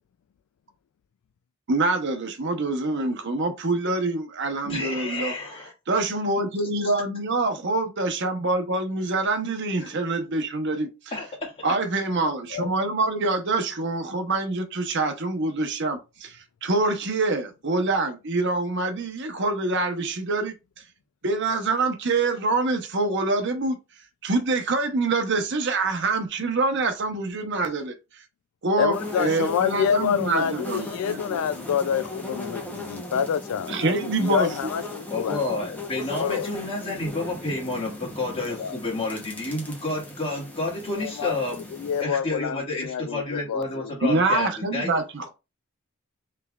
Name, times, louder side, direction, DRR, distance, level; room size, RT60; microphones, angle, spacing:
voice 1, 1.7-5.3 5.9-10.9 11.6-20.5 21.2-23.8 24.2-27.9 28.6-31.4 33.7-34.5 44.0-45.3, right 3 dB, 55° right, 0.8 m, -25 dB
voice 2, 4.6-5.7 6.8-6.9 9.8-9.9 11.1-11.5 35.1-41.6 42.0-45.0, left 2 dB, 25° left, 1.8 m, -30 dB
voice 3, 28.8-35.4 36.2-36.5 38.5-38.7 41.0-41.3 41.7-44.2, left 8 dB, 80° left, 0.3 m, -27 dB
sound 1, 28.9-42.0, left 2 dB, 5° left, 0.8 m, -37 dB
5.5 x 3.3 x 2.3 m
head